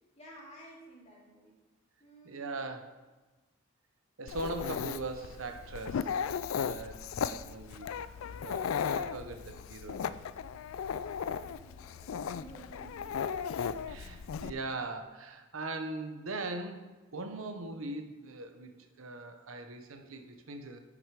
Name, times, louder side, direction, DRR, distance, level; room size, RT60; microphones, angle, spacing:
voice 1, 0.2-1.6 2.0-2.6 11.0-13.9, right 1 dB, 30° left, -4 dB, 2.3 m, -54 dB
voice 2, 2.2-2.9 4.2-6.2 6.5-8.0 8.4-10.2 13.6-16.9 17.1-20.8, right 2 dB, 80° right, 6 dB, 0.9 m, -40 dB
Dog, 4.3-14.5, left 7 dB, 80° left, 0.4 m, -36 dB
7.5 x 6.3 x 4.9 m, 1.2 s
head